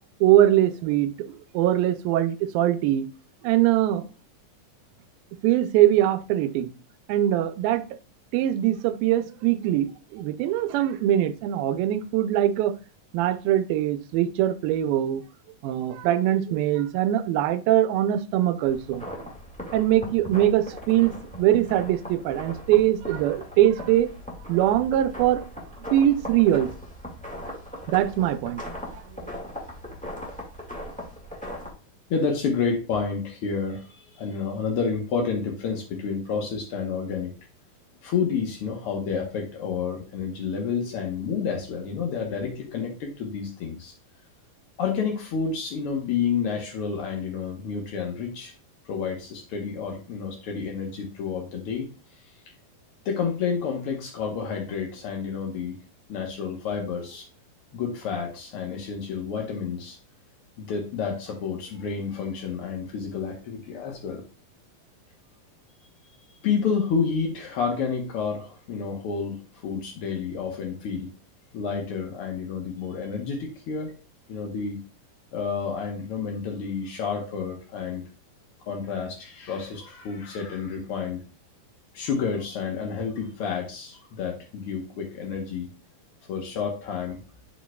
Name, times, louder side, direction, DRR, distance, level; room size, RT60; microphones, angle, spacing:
voice 1, 0.2-3.1 3.4-4.1 5.4-6.7 7.1-7.8 8.3-12.7 13.1-15.2 15.6-19.1 19.7-24.1 24.5-25.4 25.9-26.7 27.9-28.6 28.9-29.3, right 12 dB, 90° right, 2.4 m, -22 dB
sound 1, 18.6-31.7, left 1 dB, 5° left, 0.6 m, -39 dB
voice 2, 32.1-37.3 38.0-43.9 44.8-48.5 48.8-52.3 53.0-55.8 56.1-57.3 57.7-60.0 60.6-64.2 66.4-71.1 71.5-73.9 74.3-74.8 75.3-78.0 78.7-81.2 81.9-85.7 86.3-87.2, left 6 dB, 70° left, 1.3 m, -30 dB
10.5 x 5.1 x 2.3 m
omnidirectional pair, 4.1 m